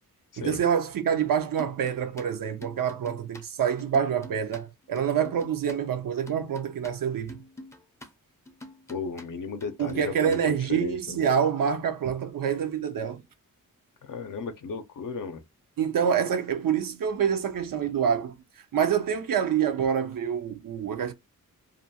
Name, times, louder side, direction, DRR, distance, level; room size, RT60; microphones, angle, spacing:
voice 1, 0.4-7.4 9.8-13.2 15.8-18.3 18.7-21.1, right 8 dB, 75° right, 0.5 m, -26 dB
sound 1, 1.6-5.8 6.1-8.1 8.5-9.3 9.6-10.4, left 1 dB, 10° left, 0.5 m, -47 dB
voice 2, 8.9-11.2 14.0-15.4, left 5 dB, 70° left, 0.5 m, -35 dB
2.5 x 2.2 x 2.7 m
wide cardioid pair, 110°, 33 cm